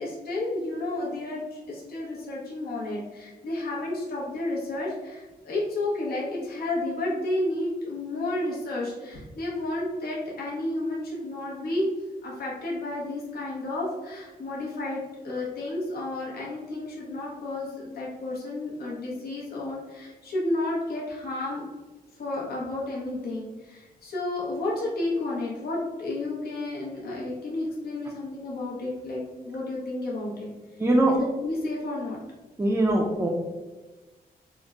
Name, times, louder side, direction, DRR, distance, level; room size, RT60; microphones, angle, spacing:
voice 1, 0.0-11.9 12.2-21.6 22.2-30.5 31.1-32.2, left 2 dB, 80° left, -4 dB, 0.9 m, -31 dB
voice 2, 30.8-31.1 32.6-33.3, right 1 dB, 15° right, -3 dB, 0.4 m, -21 dB
3.5 x 2.1 x 3.5 m, 1.2 s
cardioid pair, 105°, 16 cm